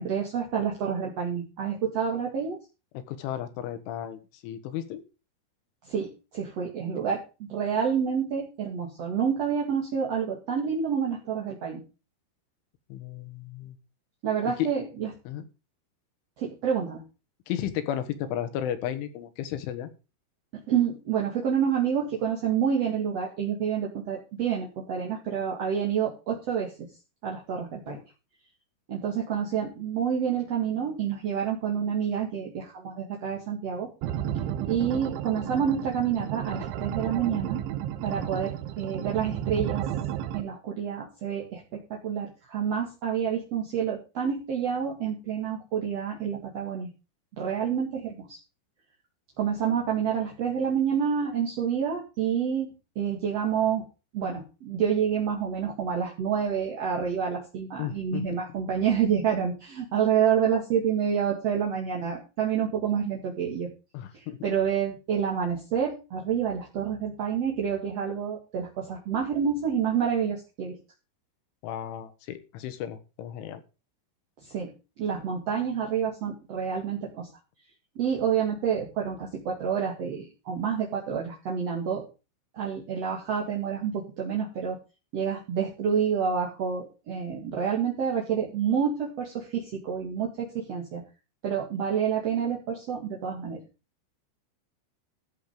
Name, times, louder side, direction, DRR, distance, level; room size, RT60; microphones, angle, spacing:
voice 1, 0.0-2.6 5.8-11.8 14.2-15.1 16.4-17.0 20.7-26.7 27.2-28.0 28.9-33.9 34.6-37.6 38.0-39.8 40.3-46.9 47.4-48.4 49.4-52.7 53.0-53.8 54.1-63.7 64.1-70.8 74.4-74.7 75.0-77.3 78.0-82.0 82.5-84.8 85.1-91.0 91.4-93.6, right 7 dB, 45° right, -2 dB, 2.2 m, -28 dB
voice 2, 3.0-5.0 12.9-13.8 15.3-15.5 17.5-19.9 27.9-28.0 57.8-58.3 63.9-64.5 71.6-73.6, left 10 dB, 75° left, 10 dB, 3.7 m, -34 dB
sound 1, 34.0-40.4, right 11 dB, 75° right, 3.2 m, -32 dB
14.0 x 7.7 x 5.1 m, 0.31 s
omnidirectional pair, 5.7 m